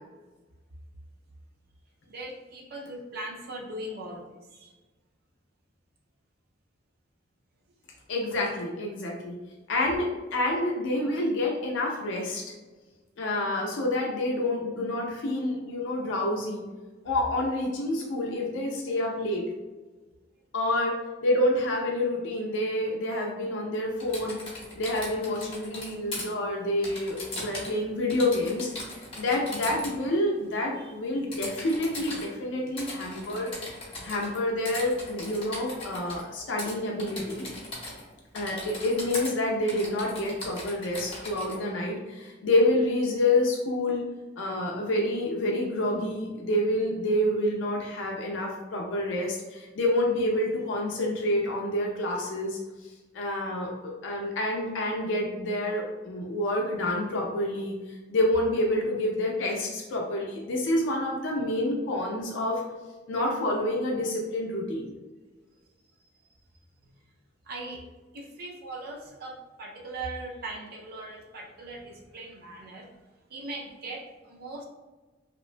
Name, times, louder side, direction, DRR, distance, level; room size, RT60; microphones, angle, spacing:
voice 1, 2.1-4.7 30.8-30.9 67.5-67.8 68.1-72.9 73.3-74.6, right 2 dB, 50° right, 0 dB, 0.4 m, -40 dB
voice 2, 8.1-9.4 9.7-12.4 13.2-16.6 17.0-19.5 20.5-21.0 21.2-24.4 24.8-28.7 29.2-33.5 34.0-37.5 38.3-44.1 44.4-52.6 52.8-57.7 58.1-62.6 63.1-64.9, left 1 dB, 70° left, -1 dB, 0.4 m, -28 dB
Typing, 24.0-26.2 26.8-27.8 28.1-29.9 31.3-32.3 32.8-34.4 34.6-36.2 36.6-36.7 37.0-38.1 38.3-39.3 39.7-41.6, left 2 dB, 30° left, 0.8 m, -39 dB
2.8 x 2.1 x 2.4 m, 1.2 s
head